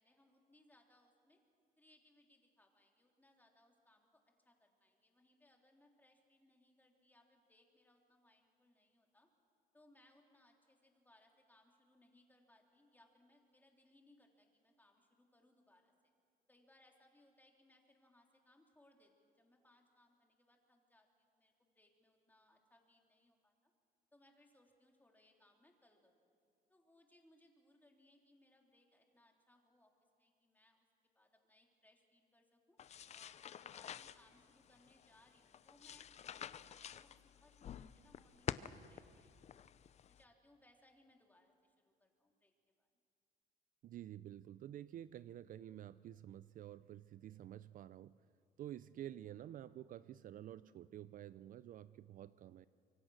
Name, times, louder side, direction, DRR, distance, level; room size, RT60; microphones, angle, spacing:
voice 1, 0.0-1.4 1.8-4.1 4.4-9.3 9.7-16.1 16.5-23.7 24.1-26.1 26.7-29.9 30.2-30.8 31.1-32.8 33.1-39.6 40.1-42.5 42.8-42.9, left 1 dB, 10° left, 2 dB, 3.1 m, -70 dB
sound 1, 32.8-40.2, left 9 dB, 40° left, 0.6 m, -49 dB
voice 2, 43.8-48.2 48.6-52.7, right 12 dB, 55° right, 16 dB, 0.5 m, -50 dB
25.5 x 23.5 x 6.3 m, 2.4 s
cardioid pair, 110°, 17 cm